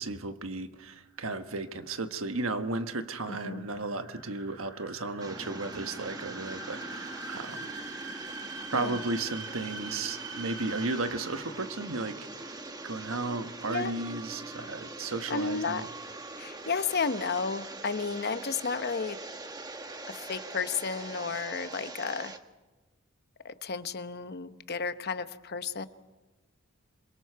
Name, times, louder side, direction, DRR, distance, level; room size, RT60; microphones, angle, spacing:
voice 1, 0.0-7.7 8.7-15.9, right 3 dB, 75° right, 8 dB, 1.3 m, -34 dB
sound 1, 1.1-11.8, right 3 dB, 55° right, 2.0 m, -44 dB
voice 2, 3.3-3.6 8.7-9.0 13.7-13.9 15.3-15.8 16.4-19.2 20.1-22.3 23.4-25.9, left 5 dB, 50° left, 11 dB, 0.9 m, -32 dB
sound 2, 5.2-22.4, right 2 dB, 20° right, 1.1 m, -43 dB
26.5 x 22.5 x 4.7 m, 1.2 s
head